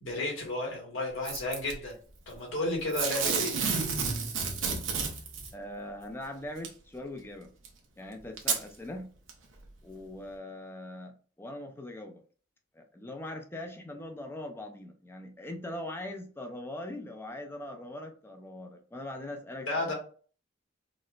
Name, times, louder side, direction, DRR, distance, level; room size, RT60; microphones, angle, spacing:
voice 1, 0.0-2.0 2.3-3.6 19.7-19.9, left 2 dB, 80° left, -1 dB, 1.3 m, -32 dB
Packing tape duct tape / Tearing, 1.2-1.7 2.9-5.5 6.6-6.7 7.6-7.7 8.4-8.6 9.3-9.4, right 5 dB, 90° right, 0.8 m, -30 dB
voice 2, 5.5-7.5 8.0-9.1 9.8-12.2 12.7-19.9, left 1 dB, 10° left, 3 dB, 0.4 m, -41 dB
4.0 x 2.1 x 2.3 m, 0.41 s
head